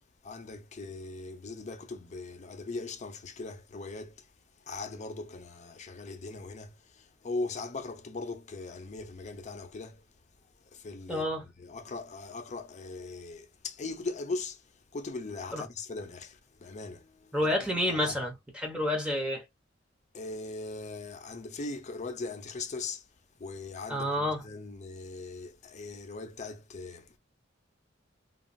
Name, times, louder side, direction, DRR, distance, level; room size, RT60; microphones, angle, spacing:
voice 1, 0.2-4.2 4.7-10.0 10.7-14.6 14.9-17.4 17.9-18.2 20.1-23.0 23.4-27.2, left 3 dB, 40° left, 0.5 m, -40 dB
voice 2, 11.1-11.4 15.5-15.6 17.3-19.4 23.9-24.4, left 1 dB, 5° right, 0.8 m, -29 dB
3.1 x 2.3 x 2.5 m
head